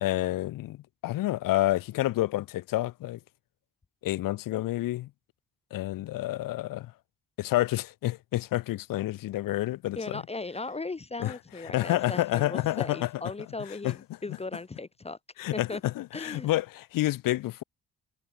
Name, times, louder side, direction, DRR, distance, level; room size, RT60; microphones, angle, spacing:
voice 1, 0.0-3.2 4.0-5.1 5.7-6.9 7.4-10.2 11.2-11.3 11.6-13.1 13.8-14.0 15.4-17.6, left 16 dB, 75° left, 1.0 m, -29 dB
voice 2, 10.0-15.2 15.5-15.8 16.1-16.5, left 3 dB, 20° left, 0.6 m, -37 dB
hypercardioid pair, 50°, 33 cm